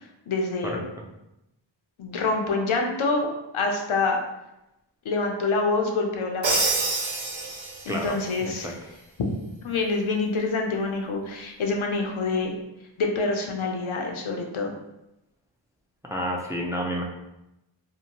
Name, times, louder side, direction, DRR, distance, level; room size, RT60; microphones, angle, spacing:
voice 1, 0.3-0.8 2.0-4.2 5.0-6.7 7.9-8.8 9.6-12.5 13.0-14.7, left 3 dB, 85° left, 1 dB, 0.6 m, -26 dB
Crash cymbal, 6.4-8.1, right 3 dB, 70° right, 0.7 m, -26 dB
voice 2, 7.9-8.7 16.0-17.0, equal, 10° right, 0 dB, 0.3 m, -30 dB
2.7 x 2.1 x 2.8 m, 0.90 s
wide cardioid pair, 45°, 47 cm